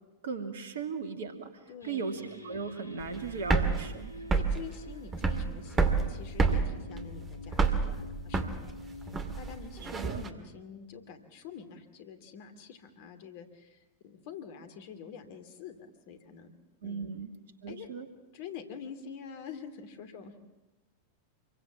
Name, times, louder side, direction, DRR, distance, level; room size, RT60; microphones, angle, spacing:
voice 1, 0.2-1.5 1.8-4.1 9.8-10.2 16.8-17.3 17.6-18.1, right 5 dB, 60° right, 8 dB, 2.6 m, -37 dB
voice 2, 1.7-2.1 4.3-8.7 9.4-16.5 16.8-17.1 17.7-17.9 18.3-20.3, left 7 dB, 50° left, 8 dB, 2.6 m, -46 dB
sound 1, 1.8-11.2, left 2 dB, 85° left, 1.8 m, -47 dB
sound 2, 3.0-10.3, right 4 dB, 20° right, 2.1 m, -29 dB
27.0 x 23.0 x 7.4 m, 1.1 s
figure-of-eight pair, 90°, 0 cm